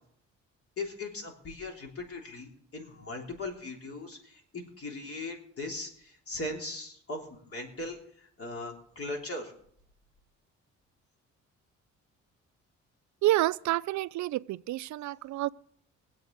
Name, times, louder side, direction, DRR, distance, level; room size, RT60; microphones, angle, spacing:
voice 1, 0.8-9.5, left 2 dB, 50° left, 3.3 m, -39 dB
voice 2, 13.2-15.5, right 15 dB, 70° right, 0.5 m, -28 dB
23.0 x 8.2 x 4.0 m
cardioid pair, 90°, 30 cm